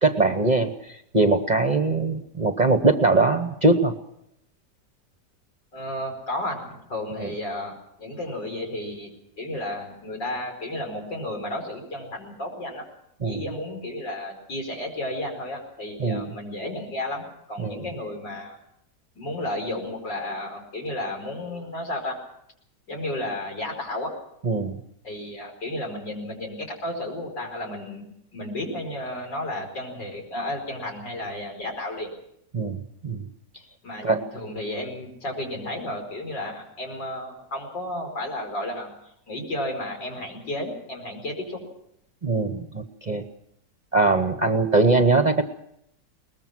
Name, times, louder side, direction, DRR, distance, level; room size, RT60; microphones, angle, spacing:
voice 1, 0.0-4.0 7.2-7.3 13.2-13.4 16.0-16.3 17.6-17.8 24.4-24.8 32.5-32.8 33.0-33.3 34.0-34.2 42.2-43.2 43.9-45.4, right 3 dB, 30° right, 8 dB, 0.9 m, -21 dB
voice 2, 5.7-9.1 9.4-12.8 13.2-18.6 19.2-22.2 22.9-24.1 25.0-28.1 28.3-32.1 33.8-41.6, left 1 dB, 85° left, 2 dB, 5.6 m, -33 dB
22.0 x 20.0 x 6.1 m, 0.76 s
omnidirectional pair, 1.9 m